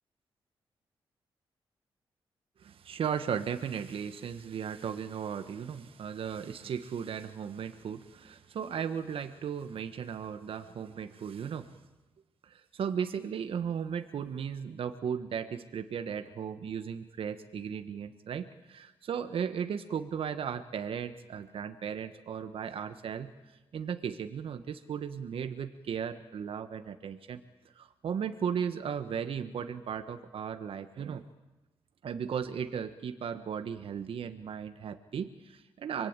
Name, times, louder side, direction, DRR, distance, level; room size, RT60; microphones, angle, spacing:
voice 1, 2.6-11.8 12.4-31.2 32.0-36.1, right 7 dB, 70° right, 9 dB, 1.3 m, -36 dB
25.5 x 22.0 x 9.0 m, 1.1 s
cardioid pair, 70°, 10 cm